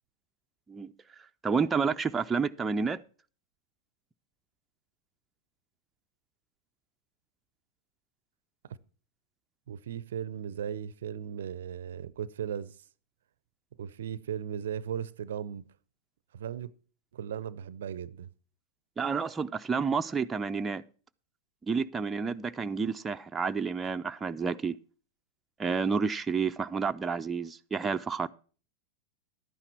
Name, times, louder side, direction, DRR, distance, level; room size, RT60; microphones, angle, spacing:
voice 1, 1.4-3.0 19.0-20.8 21.7-24.8 25.6-28.3, right 5 dB, 15° right, 0.5 m, -30 dB
voice 2, 9.7-12.8 13.8-15.7 16.3-16.7 17.1-18.3, right 9 dB, 65° right, 0.5 m, -37 dB
11.5 x 9.8 x 4.4 m
figure-of-eight pair, 95°, 0 cm